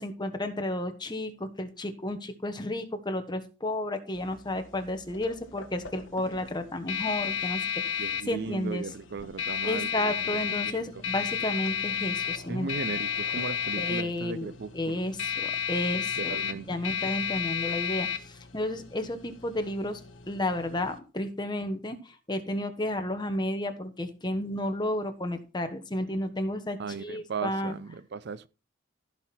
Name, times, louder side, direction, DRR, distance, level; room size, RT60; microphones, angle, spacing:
voice 1, 0.0-7.6 7.9-8.8 9.6-12.7 13.8-14.5 14.7-16.4 16.7-20.0 20.3-27.8, left 1 dB, 20° left, 1.3 m, -32 dB
sound 1, 4.2-21.0, left 7 dB, 60° left, 1.4 m, -33 dB
voice 2, 8.0-11.0 12.5-15.0 15.9-16.8 26.8-28.5, right 5 dB, 50° right, 0.5 m, -37 dB
15.0 x 6.1 x 4.2 m
head